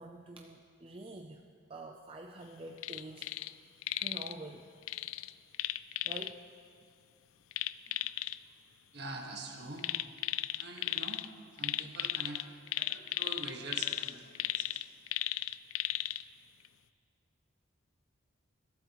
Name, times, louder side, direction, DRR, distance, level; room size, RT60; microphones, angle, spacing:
voice 1, 0.0-1.4 1.7-3.3 4.0-4.7 6.0-6.4, right 2 dB, 25° right, 2 dB, 0.5 m, -47 dB
sound 1, 2.8-3.5 3.8-4.3 4.9-6.3 7.5-8.4 9.8-11.3 11.6-16.2 16.6-16.7, left 15 dB, 80° left, 0.3 m, -35 dB
voice 2, 8.9-9.9 10.6-11.2 11.6-12.4 12.7-14.8, right 2 dB, 55° right, 1 dB, 1.6 m, -44 dB
21.5 x 12.5 x 3.0 m, 2.3 s
head